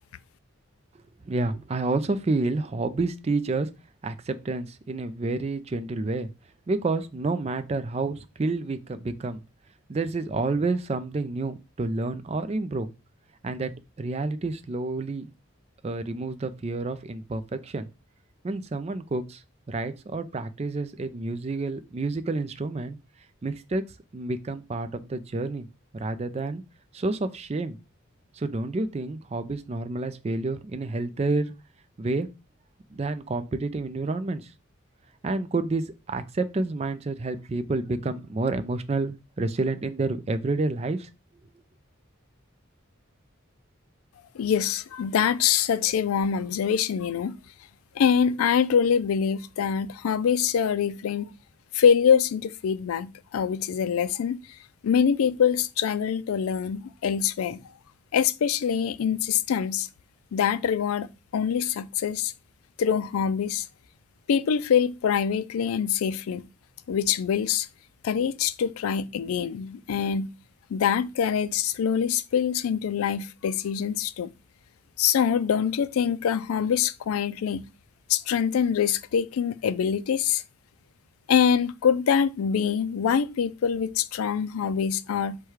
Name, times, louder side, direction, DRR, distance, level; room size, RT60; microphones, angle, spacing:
voice 1, 1.2-3.7 4.0-6.3 6.7-9.4 9.9-12.9 13.4-13.7 14.0-15.3 15.8-17.9 18.4-19.4 19.7-23.0 23.4-23.8 24.1-25.7 25.9-26.6 26.9-27.8 28.3-31.5 32.0-32.3 32.9-34.5 35.2-41.1, right 3 dB, 30° right, 0.3 m, -29 dB
voice 2, 44.3-47.4 48.0-51.3 51.7-54.6 54.8-57.6 58.1-59.9 60.3-61.1 61.3-62.3 62.8-63.7 64.3-66.4 66.9-67.7 68.0-70.3 70.7-74.3 75.0-77.6 78.1-80.4 81.3-85.4, left 7 dB, 90° left, 0.4 m, -24 dB
4.6 x 2.2 x 4.8 m
head